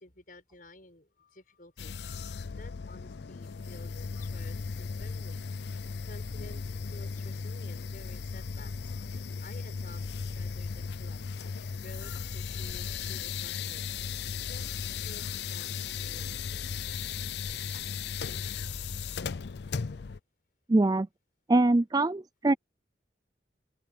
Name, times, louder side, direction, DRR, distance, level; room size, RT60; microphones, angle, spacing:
voice 1, 0.0-5.5 6.1-11.2 11.8-16.7, left 2 dB, 50° left, 7.0 m, -53 dB
sound 1, 1.8-20.2, left 6 dB, 65° left, 0.5 m, -36 dB
voice 2, 20.7-21.1 21.5-22.5, right 2 dB, 20° right, 0.3 m, -23 dB
open air
head